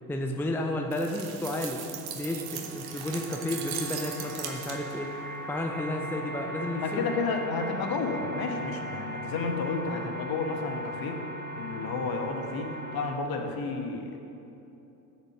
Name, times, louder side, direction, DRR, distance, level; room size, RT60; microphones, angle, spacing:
voice 1, 0.1-1.8 2.1-5.1 5.5-7.1, left 1 dB, 5° left, 2 dB, 0.6 m, -32 dB
sound 1, 0.9-5.1, right 8 dB, 50° right, 1.2 m, -39 dB
sound 2, 1.1-13.2, right 1 dB, 20° right, 0.9 m, -39 dB
voice 2, 6.7-11.3 11.5-14.2, left 4 dB, 45° left, 4 dB, 1.3 m, -31 dB
8.2 x 6.6 x 6.2 m, 2.9 s
hypercardioid pair, 65°, 49 cm